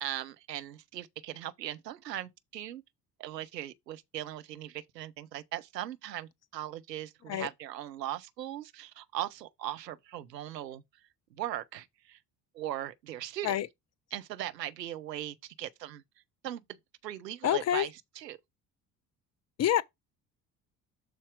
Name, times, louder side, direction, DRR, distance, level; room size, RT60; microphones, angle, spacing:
voice 1, 0.0-2.8 3.2-10.8 11.3-12.2 12.5-13.6 14.1-16.0 16.4-16.6 17.0-17.9 18.2-18.4, right 12 dB, 80° right, 0.8 m, -39 dB
voice 2, 17.4-17.9 19.6-19.8, left 11 dB, 35° left, 0.6 m, -27 dB
6.5 x 4.1 x 4.7 m
figure-of-eight pair, 50°, 48 cm